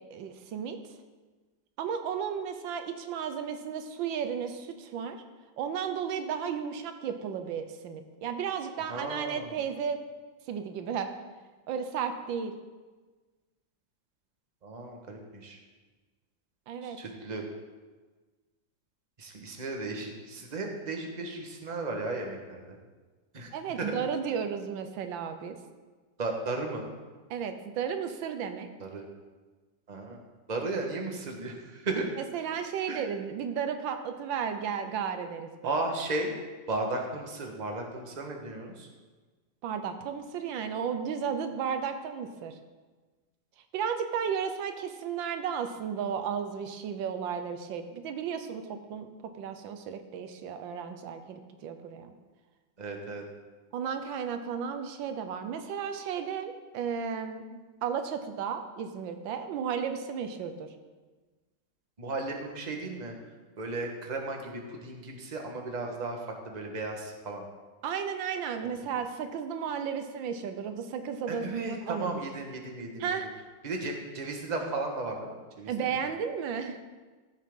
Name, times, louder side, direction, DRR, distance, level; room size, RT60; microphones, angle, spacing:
voice 1, 0.1-0.8 1.8-5.2 5.6-10.0 10.5-11.1 11.7-12.5 16.7-17.0 23.5-25.6 27.3-28.7 32.2-35.8 39.6-42.5 43.7-49.1 49.4-52.1 53.7-60.7 67.8-72.2 73.0-73.3 75.7-76.8, right 7 dB, 85° right, 7 dB, 1.5 m, -34 dB
voice 2, 8.9-9.6 14.6-15.6 16.8-17.4 19.2-22.8 23.3-23.9 26.2-26.9 28.8-29.0 29.9-30.2 30.5-32.1 32.9-33.0 35.6-36.3 36.7-38.9 52.8-53.2 62.0-63.1 63.6-66.2 66.4-67.4 71.3-73.2 73.6-76.0, right 2 dB, 25° right, 2 dB, 1.3 m, -35 dB
14.0 x 7.4 x 3.7 m, 1.3 s
omnidirectional pair, 2.0 m